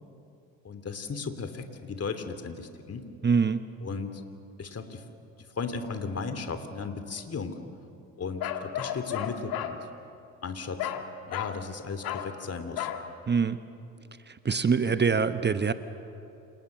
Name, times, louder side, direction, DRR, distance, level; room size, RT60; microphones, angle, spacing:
voice 1, 0.6-3.1 3.8-4.2 4.6-5.0 5.6-7.6 8.2-9.9 10.4-10.9 11.3-12.9, left 4 dB, 35° left, 8 dB, 3.1 m, -36 dB
voice 2, 3.2-3.6 13.3-13.6 14.4-15.7, right 5 dB, 25° right, 11 dB, 1.2 m, -24 dB
Bark, 8.4-9.8 10.8-11.0 11.3-11.6 12.0-12.3 12.8-13.0, left 10 dB, 60° left, 2.0 m, -33 dB
28.0 x 28.0 x 6.7 m, 2.7 s
hypercardioid pair, 55°, 40 cm